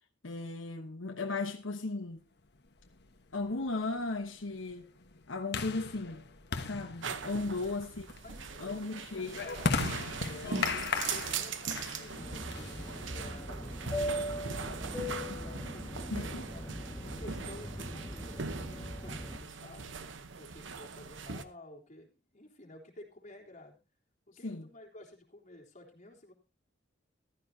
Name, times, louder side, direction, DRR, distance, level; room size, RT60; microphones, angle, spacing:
voice 1, 0.2-2.2 3.3-4.9 5.3-6.2 6.6-8.0 8.6-9.4 10.4-10.8 15.3-15.4 16.1-16.4 24.4-24.7, left 3 dB, 85° left, 1.2 m, -36 dB
sound 1, 2.8-13.2, left 4 dB, 60° left, 1.3 m, -38 dB
sound 2, 7.0-21.4, right 5 dB, 70° right, 1.0 m, -40 dB
voice 2, 8.2-9.7 10.3-20.0 20.4-23.8 24.3-26.3, left 1 dB, 40° left, 3.6 m, -52 dB
Fixed-wing aircraft airplane, 12.2-19.4, equal, 15° left, 1.7 m, -40 dB
14.5 x 13.5 x 2.8 m
head